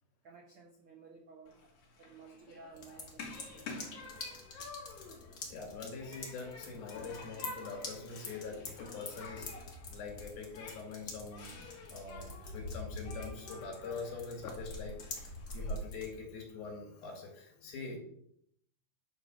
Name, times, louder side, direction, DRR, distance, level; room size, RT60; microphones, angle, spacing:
voice 1, 0.2-1.5 2.0-4.3, right 4 dB, 85° right, 0 dB, 1.1 m, -56 dB
Human group actions, 1.5-15.8, left 2 dB, 55° left, 3.2 m, -48 dB
sound 1, 2.7-16.1, left 3 dB, 35° left, 1.6 m, -47 dB
voice 2, 5.4-9.5 9.9-18.0, left 4 dB, 80° left, 2 dB, 4.1 m, -44 dB
9.7 x 4.5 x 6.3 m, 0.71 s
omnidirectional pair, 4.3 m